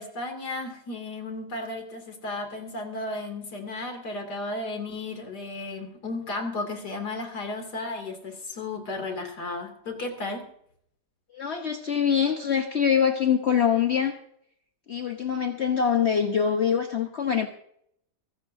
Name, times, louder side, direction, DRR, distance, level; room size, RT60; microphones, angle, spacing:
voice 1, 0.0-10.5, left 2 dB, 85° left, 4 dB, 3.3 m, -34 dB
voice 2, 11.3-14.2 14.9-17.5, left 7 dB, 45° left, 4 dB, 1.2 m, -24 dB
24.0 x 12.0 x 2.7 m, 0.69 s
omnidirectional pair, 1.7 m